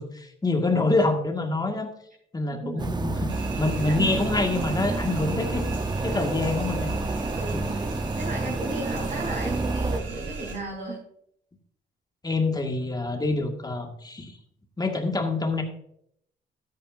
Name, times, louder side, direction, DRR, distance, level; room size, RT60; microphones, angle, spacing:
voice 1, 0.0-1.9 2.3-3.3 3.6-5.7 6.0-7.1 7.5-7.7 12.2-14.4 14.8-15.6, left 2 dB, 20° left, 3 dB, 1.9 m, -26 dB
voice 2, 2.5-2.9 3.7-4.0 7.3-7.9 8.1-11.0, right 2 dB, 35° right, -4 dB, 3.8 m, -34 dB
sound 1, 2.8-10.0, right 2 dB, 20° right, 0.8 m, -29 dB
sound 2, 3.3-10.6, right 4 dB, 80° right, 4.6 m, -37 dB
12.5 x 9.4 x 2.6 m, 0.70 s
cardioid pair, 90°, 20 cm